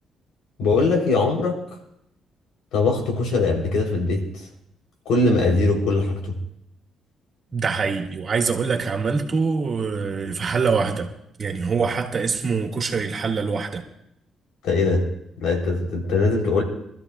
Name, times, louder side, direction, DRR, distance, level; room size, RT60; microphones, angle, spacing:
voice 1, 0.6-1.6 2.7-4.2 5.1-6.2 14.6-15.0 15.4-16.6, left 3 dB, 85° left, 1 dB, 3.7 m, -21 dB
voice 2, 7.5-11.1 11.4-13.8, right 5 dB, 45° right, 3 dB, 1.9 m, -24 dB
25.5 x 13.5 x 2.4 m, 0.76 s
cardioid pair, 90°, 0 cm